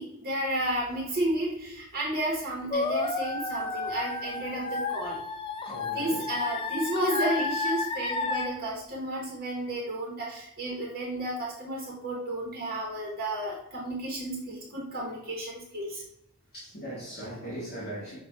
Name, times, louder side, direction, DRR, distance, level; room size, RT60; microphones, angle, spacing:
voice 1, 0.0-5.2 5.9-16.0, right 1 dB, 45° right, -3 dB, 1.0 m, -32 dB
sound 1, 2.7-8.5, left 3 dB, 25° left, 0.3 m, -31 dB
voice 2, 5.7-6.2 16.5-18.2, right 1 dB, 45° left, -8 dB, 1.3 m, -39 dB
6.3 x 2.4 x 3.1 m, 0.77 s
head